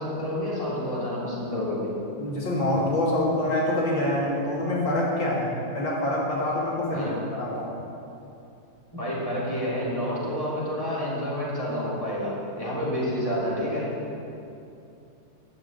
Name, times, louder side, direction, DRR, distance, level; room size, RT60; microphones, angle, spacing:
voice 1, 0.0-1.9 6.9-7.1 8.9-13.9, equal, 10° left, -8 dB, 3.4 m, -29 dB
voice 2, 2.2-7.1 7.3-7.7, left 1 dB, 85° left, -5 dB, 3.3 m, -26 dB
12.5 x 6.3 x 8.1 m, 2.7 s
omnidirectional pair, 2.0 m